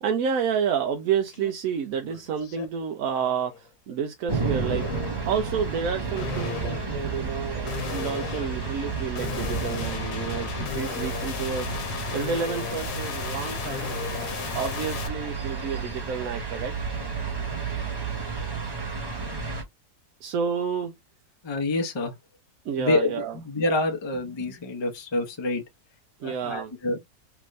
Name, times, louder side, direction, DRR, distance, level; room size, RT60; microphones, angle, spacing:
voice 1, 0.0-11.8 12.1-13.9 14.2-16.7 20.2-20.9 22.0-22.1 22.6-23.4 26.2-26.7, right 7 dB, 70° right, 1.0 m, -30 dB
sound 1, 1.3-1.5 1.9-2.7 3.2-3.6 4.7-5.3 6.2-15.1, left 9 dB, 90° left, 1.3 m, -35 dB
sound 2, 4.3-19.6, right 4 dB, 15° right, 1.2 m, -32 dB
voice 2, 21.4-22.1 22.8-25.6 26.2-27.0, left 2 dB, 25° left, 0.6 m, -27 dB
3.5 x 2.5 x 3.1 m
omnidirectional pair, 1.7 m